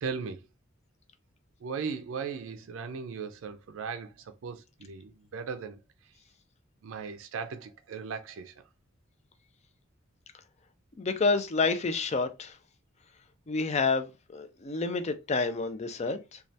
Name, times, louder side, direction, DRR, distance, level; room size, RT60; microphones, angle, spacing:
voice 1, 0.0-0.4 1.6-4.1 4.4-5.8 6.8-8.5, right 5 dB, 70° right, 0.4 m, -37 dB
voice 2, 11.0-12.6 13.5-16.4, left 4 dB, 30° left, 0.4 m, -29 dB
3.2 x 2.3 x 2.6 m
head